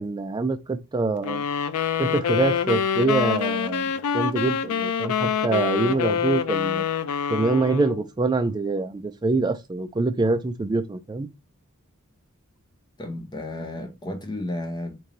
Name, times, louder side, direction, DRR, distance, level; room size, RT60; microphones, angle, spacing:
voice 1, 0.0-1.4 2.0-6.9 7.3-11.3, right 3 dB, 20° right, 0.3 m, -25 dB
sound 1, 1.2-8.0, left 7 dB, 75° left, 0.4 m, -25 dB
voice 2, 13.0-15.0, left 1 dB, 20° left, 0.6 m, -32 dB
3.1 x 2.6 x 3.8 m
head